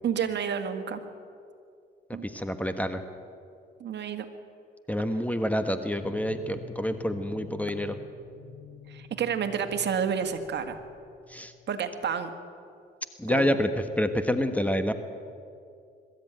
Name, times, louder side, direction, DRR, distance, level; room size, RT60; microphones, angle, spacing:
voice 1, 0.0-1.0 2.1-2.3 3.8-4.3 8.9-10.8 11.7-12.3 13.3-13.5, right 7 dB, 60° right, 7 dB, 1.8 m, -30 dB
voice 2, 2.2-3.0 4.9-8.0 11.3-11.5 13.2-13.7 14.0-14.9, equal, 5° left, 8 dB, 1.3 m, -27 dB
sound 1, 6.0-11.9, left 5 dB, 60° left, 7.1 m, -47 dB
22.5 x 13.5 x 9.2 m, 2.4 s
cardioid pair, 90°, 20 cm